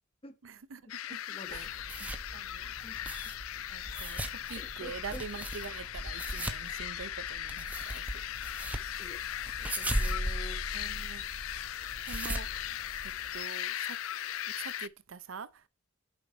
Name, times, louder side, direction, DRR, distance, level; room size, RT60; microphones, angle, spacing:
voice 1, 0.4-1.2 1.5-1.7 2.3-2.7 3.7-8.2 10.7-11.2 12.1-12.5 13.0-14.0 14.4-15.7, right 5 dB, 70° right, 0.6 m, -45 dB
sound 1, 0.9-14.9, left 12 dB, 90° left, 0.4 m, -38 dB
voice 2, 1.1-1.7 2.8-3.0 4.6-5.2 9.0-9.2 9.6-10.6, left 2 dB, 30° left, 1.2 m, -48 dB
sound 2, 1.5-13.4, right 1 dB, 5° right, 0.9 m, -39 dB
sound 3, 8.6-14.4, left 5 dB, 60° left, 3.3 m, -61 dB
7.0 x 5.7 x 4.5 m
head